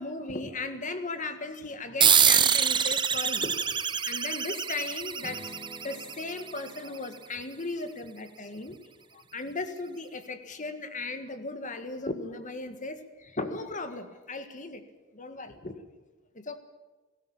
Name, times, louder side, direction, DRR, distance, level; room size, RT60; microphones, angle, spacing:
voice 1, 0.0-5.5 5.8-8.8 9.3-14.8 15.1-15.7 16.3-16.6, left 3 dB, 35° left, 9 dB, 1.8 m, -36 dB
sound 1, 2.0-7.0, right 7 dB, 20° right, 0.7 m, -25 dB
Strum, 5.2-9.1, right 1 dB, 10° left, 3.9 m, -51 dB
18.0 x 17.5 x 8.9 m, 1.2 s
head